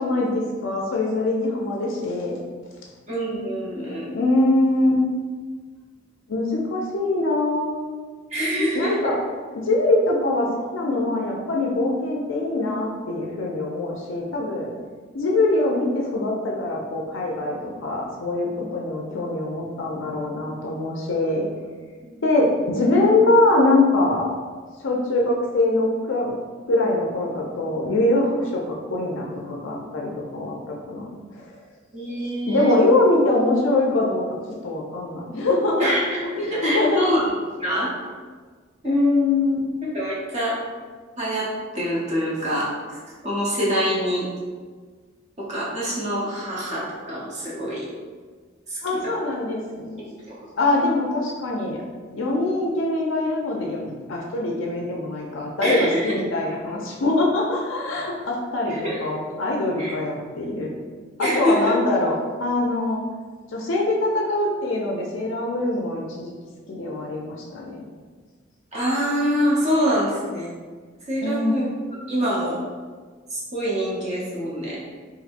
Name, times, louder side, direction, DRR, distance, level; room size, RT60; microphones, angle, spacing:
voice 1, 0.0-2.4 3.4-3.5 4.1-5.0 6.3-7.8 8.7-9.2 9.7-14.7 15.1-21.4 22.2-24.3 24.8-26.3 26.7-31.5 32.5-34.2 34.6-36.0 36.6-37.1 38.8-39.6 48.8-50.0 50.6-51.8 52.1-60.7 61.2-63.0 63.5-66.3 66.7-67.8 71.2-71.6, left 2 dB, 70° left, -1 dB, 0.5 m, -23 dB
voice 2, 3.1-4.2 8.3-9.1 22.0-22.3 31.9-32.8 35.8-37.2 37.6-37.9 38.8-39.4 39.8-40.6 41.2-42.7 43.2-44.3 45.4-47.9 48.7-49.1 50.1-50.4 55.6-56.1 58.7-59.0 59.8-59.9 61.2-61.7 68.7-70.5 71.1-71.7 72.1-72.6 73.3-74.8, equal, 35° right, -7 dB, 0.8 m, -25 dB
4.0 x 2.6 x 2.5 m, 1.5 s
head